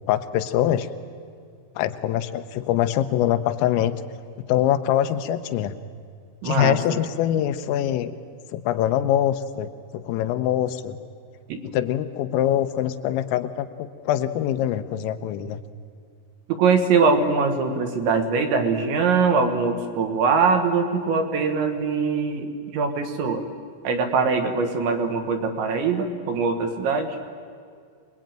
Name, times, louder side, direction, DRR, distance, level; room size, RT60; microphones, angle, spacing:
voice 1, 0.1-0.9 1.8-4.0 4.5-5.8 6.5-8.2 8.5-11.0 11.7-15.6, left 11 dB, 85° left, 9 dB, 3.5 m, -24 dB
voice 2, 6.4-7.0 11.5-11.6 16.5-23.4 23.8-27.2, right 5 dB, 70° right, 6 dB, 3.6 m, -22 dB
26.0 x 20.5 x 9.0 m, 2.1 s
omnidirectional pair, 5.9 m